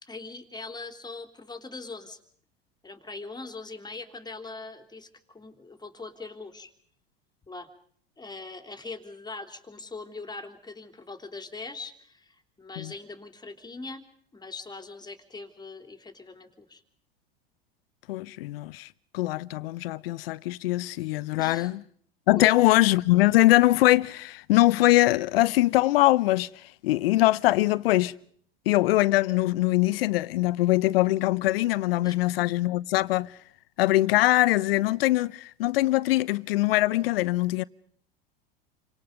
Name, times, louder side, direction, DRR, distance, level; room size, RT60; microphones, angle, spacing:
voice 1, 0.0-2.2 2.8-6.7 7.5-7.7 8.2-14.1 14.3-16.8 21.4-21.7 22.4-22.5 32.0-32.3, left 3 dB, 15° left, 3.5 m, -41 dB
voice 2, 18.1-18.9 19.1-21.8 22.3-28.1 28.7-33.4 33.8-37.6, left 17 dB, 70° left, 0.9 m, -22 dB
30.0 x 25.0 x 5.3 m
hypercardioid pair, 85°, 31 cm